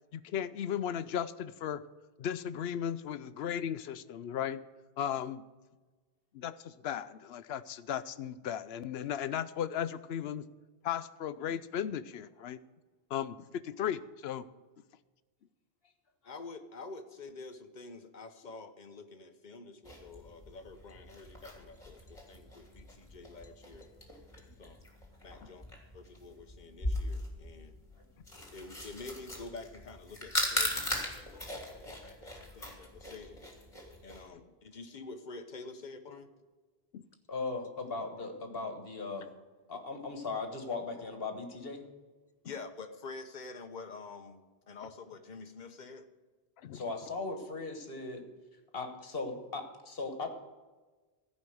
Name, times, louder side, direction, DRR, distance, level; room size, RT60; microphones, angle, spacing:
voice 1, 0.1-1.8 2.2-4.6 5.0-5.4 6.3-10.4 10.8-12.6 13.1-14.5 25.4-25.5 36.9-37.0 46.6-46.8, left 9 dB, 90° left, 15 dB, 0.8 m, -36 dB
voice 2, 16.2-23.9 24.4-24.8 25.2-25.6 25.9-27.7 28.5-33.4 34.0-36.3 42.4-46.1, left 3 dB, 50° left, 8 dB, 1.0 m, -48 dB
sound 1, 19.8-34.2, left 1 dB, 30° left, 2.7 m, -39 dB
voice 3, 37.3-39.3 39.7-41.8 46.7-48.2 48.7-50.3, left 3 dB, 65° left, 6 dB, 1.7 m, -38 dB
15.0 x 5.4 x 7.9 m, 1.3 s
omnidirectional pair, 1.0 m